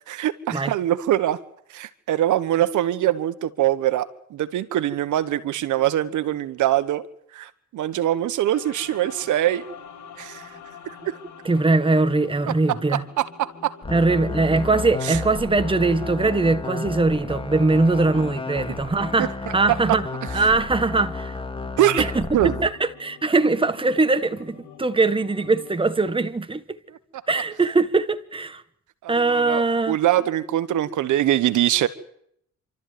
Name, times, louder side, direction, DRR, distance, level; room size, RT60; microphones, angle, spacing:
voice 1, 0.1-1.4 1.7-7.0 7.3-9.7 10.2-10.4 11.0-11.2 12.9-13.7 15.0-15.2 19.2-19.3 19.7-19.8 20.4-20.5 21.8-22.1 22.3-22.6 29.0-31.9, right 13 dB, 80° right, 1.4 m, -23 dB
sound 1, 8.5-25.8, left 7 dB, 75° left, 5.1 m, -46 dB
voice 2, 11.4-13.0 13.9-20.1 20.3-21.3 22.0-26.6 27.3-28.6 29.1-30.0, right 3 dB, 15° right, 1.6 m, -21 dB
sound 2, 13.8-22.7, left 3 dB, 15° left, 2.5 m, -32 dB
27.5 x 13.5 x 9.5 m
cardioid pair, 90°, 30 cm